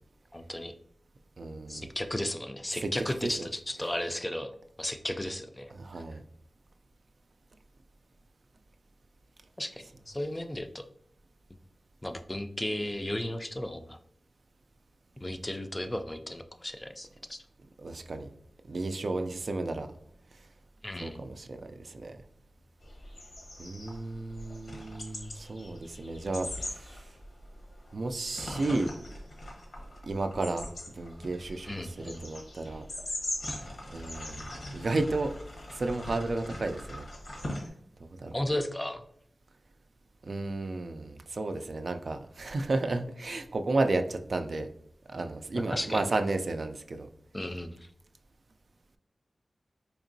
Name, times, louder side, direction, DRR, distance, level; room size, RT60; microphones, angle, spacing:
voice 1, 0.3-0.7 1.7-4.5 4.8-5.7 9.6-10.8 12.0-14.0 15.2-17.4 20.8-21.3 31.7-32.2 38.3-39.0 45.7-46.0 47.3-47.9, left 1 dB, 20° left, 7 dB, 0.3 m, -34 dB
voice 2, 1.4-1.9 2.8-2.9 3.2-3.5 5.8-6.2 17.8-18.3 18.7-19.9 21.0-22.2 23.6-27.0 27.9-28.9 30.0-30.7 30.9-32.9 33.9-35.3 35.7-37.1 38.2-38.4 40.2-44.7 45.1-47.1, right 2 dB, 65° right, 7 dB, 0.3 m, -33 dB
sound 1, 22.8-37.7, left 1 dB, 80° left, 0.9 m, -41 dB
4.3 x 2.8 x 2.6 m, 0.71 s
wide cardioid pair, 65°, 0 cm